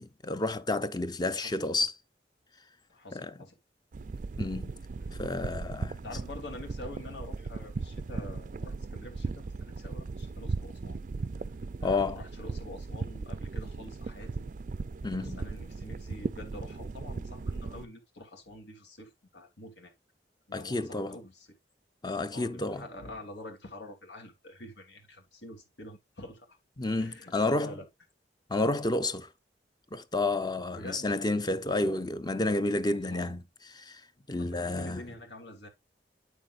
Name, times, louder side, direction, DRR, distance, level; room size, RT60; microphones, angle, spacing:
voice 1, 0.0-1.9 3.1-3.3 4.4-4.7 5.2-6.0 11.8-12.2 15.0-15.4 20.5-21.2 22.0-22.9 26.8-27.8 28.5-29.3 29.9-33.4 33.8-34.0 34.3-35.0, left 2 dB, 25° left, 0.7 m, -30 dB
voice 2, 1.3-1.9 2.9-3.6 5.0-5.2 6.0-11.0 11.8-14.5 15.2-19.9 20.5-21.5 22.3-26.6 27.0-27.9 30.7-31.1 32.9-33.3 34.4-35.7, left 1 dB, 75° left, 3.0 m, -46 dB
sound 1, 3.9-17.9, right 4 dB, 45° right, 0.4 m, -37 dB
9.4 x 7.2 x 2.5 m
head